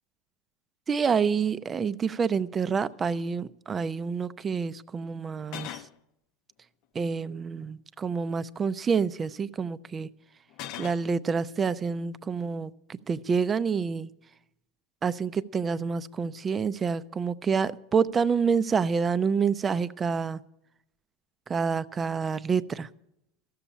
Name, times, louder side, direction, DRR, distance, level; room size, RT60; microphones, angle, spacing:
voice 1, 0.9-5.8 6.9-10.1 10.8-14.1 15.0-20.4 21.5-22.9, right 6 dB, 25° right, 0.5 m, -28 dB
sound 1, 2.4-2.5 2.8-3.0 5.4-6.0 7.2-7.6 10.5-11.1, left 12 dB, 60° left, 0.7 m, -41 dB
13.5 x 7.1 x 10.0 m
hypercardioid pair, 105°, 0 cm